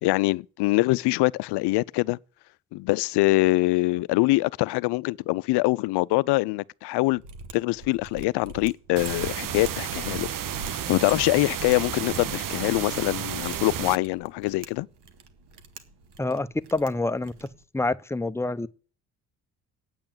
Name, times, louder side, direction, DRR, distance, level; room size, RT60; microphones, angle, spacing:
voice 1, 0.0-2.2 2.7-7.2 7.5-10.3 10.9-14.9, left 20 dB, 65° left, 0.6 m, -24 dB
Mechanisms, 7.1-17.6, right 3 dB, 60° right, 1.9 m, -44 dB
sound 1, 9.0-14.0, right 9 dB, 45° right, 1.0 m, -32 dB
voice 2, 16.2-17.5 17.7-18.7, left 2 dB, 5° left, 0.8 m, -27 dB
8.9 x 8.7 x 7.4 m
hypercardioid pair, 55°, 45 cm